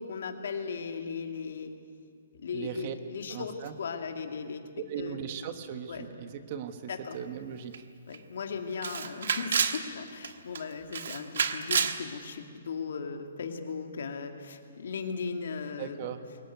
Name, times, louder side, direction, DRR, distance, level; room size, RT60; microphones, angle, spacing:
voice 1, 0.0-1.7 2.4-4.6 5.0-5.2 5.9-6.1 6.9-7.2 8.1-16.1, left 5 dB, 65° left, 4 dB, 2.4 m, -37 dB
voice 2, 2.5-2.9 3.3-3.7 4.9-7.8 15.8-16.3, right 8 dB, 35° right, 9 dB, 1.3 m, -38 dB
Camera, 7.7-7.8 8.1-8.2 8.8-9.8 10.2-10.6 10.9-12.0, right 6 dB, 65° right, 1.4 m, -29 dB
22.5 x 18.5 x 9.4 m, 2.2 s
hypercardioid pair, 170°, 0 cm